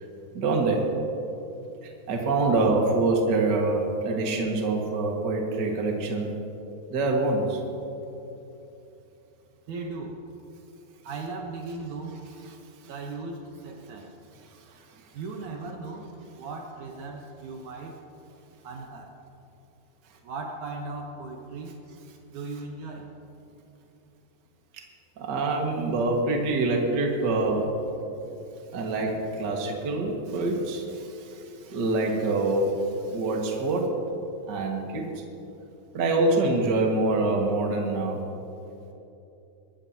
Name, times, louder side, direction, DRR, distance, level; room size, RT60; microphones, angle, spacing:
voice 1, 0.3-0.9 2.1-6.3 6.9-7.6 25.2-27.7 28.7-33.9 34.5-35.1 35.9-38.2, right 2 dB, 40° right, 0 dB, 1.7 m, -25 dB
voice 2, 9.7-10.2 11.0-12.2 12.9-14.1 15.1-18.0 18.6-19.1 20.2-21.7 22.3-23.1, right 3 dB, 70° right, 1 dB, 2.2 m, -37 dB
23.5 x 14.0 x 2.8 m, 2.9 s
omnidirectional pair, 4.0 m